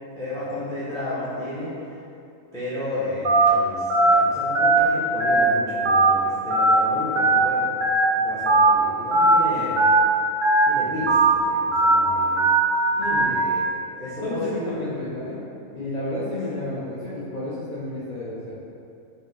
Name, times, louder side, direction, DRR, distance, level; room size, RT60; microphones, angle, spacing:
voice 1, 0.1-2.0 2.5-9.8 10.6-14.7 16.3-16.4, left 1 dB, 5° left, -11 dB, 0.4 m, -33 dB
Telephone, 3.2-3.5 3.9-4.1 4.5-4.8 5.2-5.4 5.8-6.1 6.5-6.7 7.2-7.4 7.8-8.0 8.5-8.7 9.1-9.3 9.8-10.0 10.4-10.6 11.1-11.3 11.7-11.9 12.4-12.6 13.0-13.2, right 2 dB, 75° right, 1.0 m, -18 dB
voice 2, 13.0-13.4 14.2-15.4 15.7-18.5, left 1 dB, 85° left, -9 dB, 0.3 m, -31 dB
4.0 x 2.7 x 2.4 m, 2.5 s
omnidirectional pair, 1.3 m